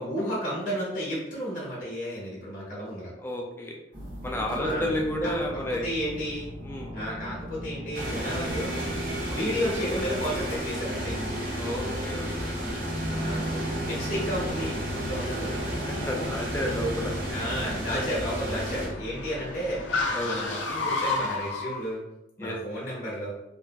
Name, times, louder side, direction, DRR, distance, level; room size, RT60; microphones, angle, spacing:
voice 1, 0.0-3.1 4.5-4.9 5.2-6.5 6.9-8.7 9.3-11.2 13.0-13.5 13.8-15.7 17.3-19.8 20.2-22.0 22.4-23.3, equal, 45° left, -7 dB, 0.9 m, -32 dB
voice 2, 3.2-3.7 4.2-5.9 6.6-6.9 9.3-9.4 11.6-12.7 16.1-17.1 17.9-18.0 20.1-20.6 22.4-22.5, equal, 10° left, -1 dB, 0.4 m, -31 dB
sound 1, 3.9-17.9, equal, 75° right, 1.1 m, -38 dB
sound 2, 7.9-18.9, equal, 50° right, 0.7 m, -32 dB
Car, 13.0-21.8, left 3 dB, 75° left, 0.5 m, -35 dB
2.9 x 2.5 x 2.3 m, 0.92 s
head